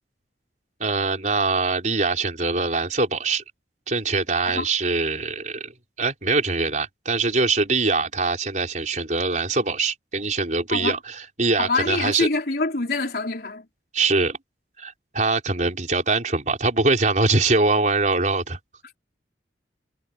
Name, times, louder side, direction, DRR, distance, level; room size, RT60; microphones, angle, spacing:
voice 1, 0.8-3.4 3.9-5.7 6.0-12.3 13.9-14.4 14.8-18.6, right 3 dB, 45° right, 5.1 m, -23 dB
voice 2, 11.6-13.7, left 3 dB, 60° left, 4.2 m, -25 dB
head